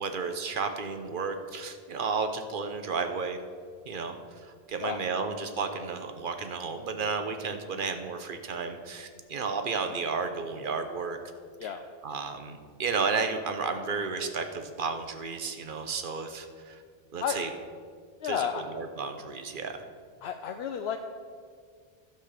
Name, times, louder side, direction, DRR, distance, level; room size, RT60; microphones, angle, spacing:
voice 1, 0.0-3.4 3.8-11.2 11.6-11.7 12.0-16.8 17.1-17.5 18.2-19.8, right 4 dB, 55° right, 7 dB, 1.0 m, -32 dB
voice 2, 18.2-18.6 20.2-21.0, left 8 dB, 80° left, 6 dB, 0.8 m, -32 dB
11.5 x 5.8 x 6.6 m, 2.1 s
omnidirectional pair, 1.1 m